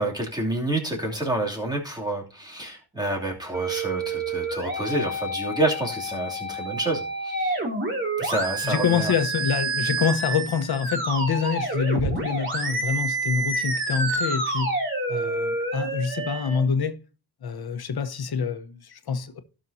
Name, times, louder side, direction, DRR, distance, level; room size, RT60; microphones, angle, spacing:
voice 1, 0.0-7.6 8.2-9.1, right 1 dB, 10° right, 2.8 m, -28 dB
sound 1, 3.5-16.6, right 2 dB, 30° right, 2.9 m, -28 dB
voice 2, 8.6-14.7 15.1-17.0 17.4-19.4, left 6 dB, 75° left, 1.2 m, -26 dB
16.5 x 6.3 x 2.8 m
wide cardioid pair, 165°, 38 cm